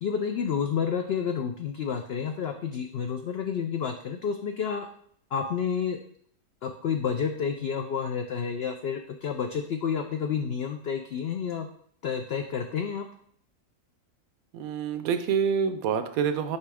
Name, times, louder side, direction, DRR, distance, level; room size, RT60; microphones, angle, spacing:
voice 1, 0.0-4.9 5.3-6.0 6.6-11.7 12.0-13.1, left 7 dB, 85° left, 5 dB, 0.5 m, -30 dB
voice 2, 14.5-16.6, right 7 dB, 75° right, 9 dB, 1.0 m, -27 dB
5.4 x 5.0 x 3.5 m, 0.63 s
omnidirectional pair, 1.6 m